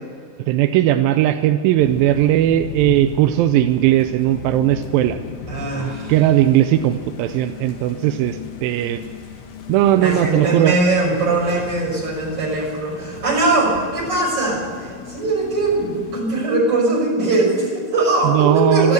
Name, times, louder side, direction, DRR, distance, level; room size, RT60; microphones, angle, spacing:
voice 1, 0.5-5.2 6.1-9.0 9.7-10.8 18.2-18.9, right 13 dB, 90° right, 9 dB, 2.4 m, -17 dB
sound 1, 1.8-16.2, left 5 dB, 65° left, 2.5 m, -36 dB
voice 2, 5.5-6.1 9.9-18.9, right 2 dB, 40° right, -2 dB, 6.8 m, -20 dB
13.5 x 13.0 x 7.8 m, 2.1 s
omnidirectional pair, 4.1 m